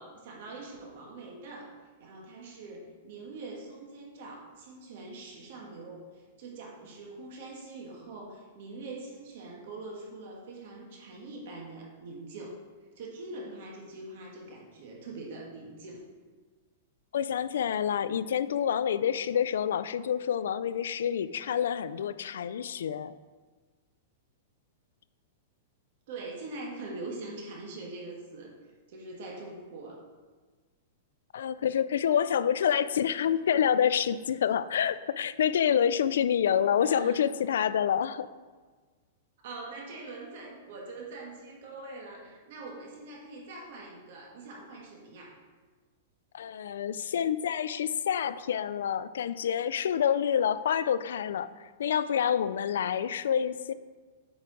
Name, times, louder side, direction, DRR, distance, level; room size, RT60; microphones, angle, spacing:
voice 1, 0.0-1.7 2.0-12.6 12.9-16.0 26.1-28.6 28.9-30.0 36.8-37.2 39.4-45.4, right 2 dB, 50° right, -1 dB, 1.5 m, -43 dB
voice 2, 17.1-23.1 31.3-38.3 46.3-53.7, left 8 dB, 85° left, 15 dB, 0.3 m, -27 dB
8.7 x 4.8 x 3.9 m, 1.4 s
supercardioid pair, 170°, 0 cm